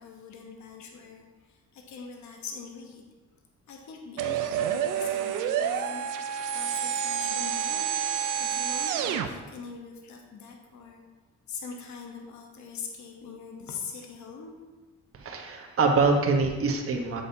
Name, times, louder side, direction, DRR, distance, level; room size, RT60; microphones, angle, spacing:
voice 1, 0.0-3.0 3.7-7.9 8.4-11.0 11.5-14.5, left 5 dB, 70° left, 2 dB, 1.0 m, -43 dB
sound 1, 4.2-9.3, right 8 dB, 90° right, 0.5 m, -29 dB
voice 2, 15.1-17.2, right 4 dB, 50° right, 2 dB, 1.1 m, -24 dB
7.8 x 6.3 x 2.7 m, 1.2 s
cardioid pair, 90°, 30 cm